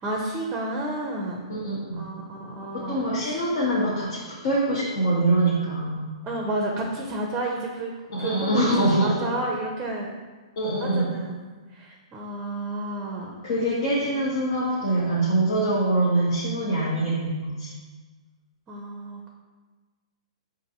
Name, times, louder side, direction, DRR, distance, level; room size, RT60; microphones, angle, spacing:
voice 1, 0.0-1.4 1.9-3.3 6.2-7.9 8.2-8.7 9.0-10.1 10.8-11.4 11.7-13.4 18.7-19.3, right 2 dB, 20° right, 0 dB, 0.6 m, -31 dB
voice 2, 1.5-2.0 2.7-6.1 8.1-9.2 10.6-11.1 13.4-17.7, right 1 dB, 55° left, -7 dB, 0.9 m, -24 dB
5.1 x 2.5 x 2.8 m, 1.3 s
hypercardioid pair, 125°, 3 cm